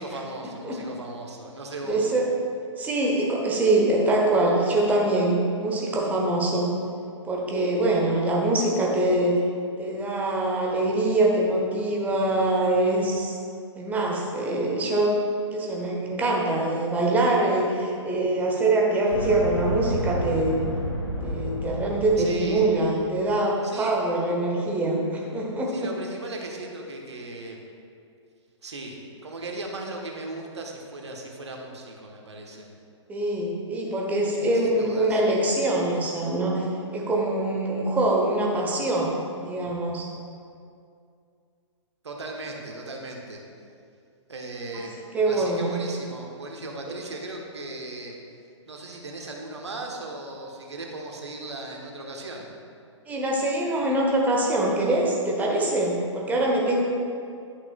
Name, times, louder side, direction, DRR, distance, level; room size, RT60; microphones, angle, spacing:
voice 1, 0.0-2.1 22.2-22.7 23.6-24.0 25.7-27.6 28.6-29.0 29.2-32.7 34.4-35.2 42.0-43.4 44.3-44.9 45.2-48.1 48.7-52.5, right 2 dB, 65° right, 0 dB, 1.2 m, -37 dB
voice 2, 1.9-2.3 2.8-6.7 7.2-9.4 9.8-13.4 13.8-20.6 21.2-25.7 33.1-36.7 36.9-39.1 39.4-40.1 44.7-44.8 45.1-45.8 53.1-56.8, right 2 dB, 10° right, -2 dB, 1.0 m, -24 dB
sound 1, 19.1-23.0, equal, 65° left, 1.3 m, -31 dB
11.5 x 5.9 x 2.4 m, 2.4 s
figure-of-eight pair, 120°, 16 cm